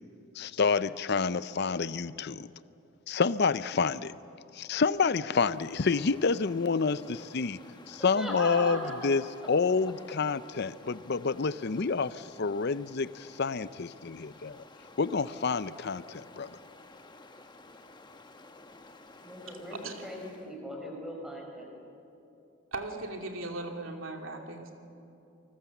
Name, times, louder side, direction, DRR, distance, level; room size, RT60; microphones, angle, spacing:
voice 1, 0.4-2.5 3.1-4.1 4.5-7.6 7.9-9.2 9.5-14.6 15.0-16.5, left 4 dB, 50° left, 16 dB, 0.6 m, -28 dB
Stream, 5.5-20.6, left 2 dB, 20° left, 1.0 m, -53 dB
voice 2, 8.0-9.1 19.2-21.7, equal, ahead, -1 dB, 5.0 m, -39 dB
voice 3, 22.7-24.7, right 2 dB, 70° right, 3 dB, 2.6 m, -38 dB
28.0 x 20.5 x 7.2 m, 2.8 s
head